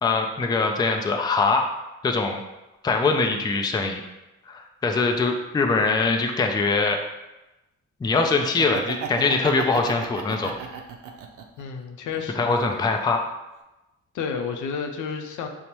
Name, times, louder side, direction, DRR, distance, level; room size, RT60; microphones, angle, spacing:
voice 1, 0.0-1.6 2.0-2.4 2.8-4.0 4.5-7.0 8.0-10.5 12.4-13.2, left 4 dB, 15° left, 4 dB, 0.4 m, -22 dB
Laughter, 8.5-11.6 12.1-13.2, right 7 dB, 80° right, 0.5 m, -35 dB
voice 2, 11.6-12.5 14.1-15.5, left 6 dB, 75° left, 4 dB, 0.5 m, -31 dB
5.1 x 2.1 x 2.9 m, 0.99 s
cardioid pair, 90°, 30 cm